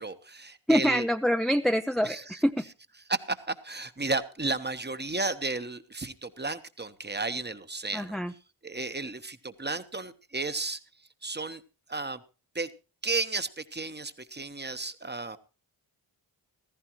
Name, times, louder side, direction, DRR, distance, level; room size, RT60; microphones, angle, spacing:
voice 1, 0.0-1.1 2.0-2.4 3.1-8.2 8.6-10.8 11.2-11.6 11.9-12.2 12.5-12.7 13.0-15.4, right 3 dB, 20° right, 11 dB, 1.1 m, -33 dB
voice 2, 0.7-2.7 7.9-8.3, equal, ahead, 6 dB, 0.6 m, -25 dB
15.5 x 14.0 x 3.1 m, 0.32 s
supercardioid pair, 40°, 50 cm